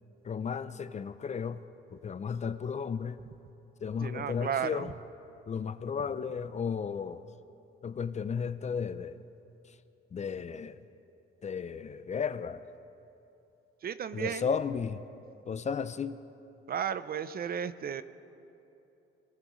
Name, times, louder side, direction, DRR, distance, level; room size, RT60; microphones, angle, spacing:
voice 1, 0.2-1.6 1.9-3.2 3.8-4.9 5.5-7.2 7.8-9.2 10.1-10.8 11.4-12.6 14.1-15.0 15.5-16.2, left 6 dB, 35° left, 13 dB, 0.5 m, -34 dB
voice 2, 4.0-4.9 13.8-14.5 16.7-18.0, right 8 dB, 50° right, 13 dB, 0.6 m, -34 dB
23.5 x 19.5 x 3.1 m, 2.9 s
cardioid pair, 90°, 20 cm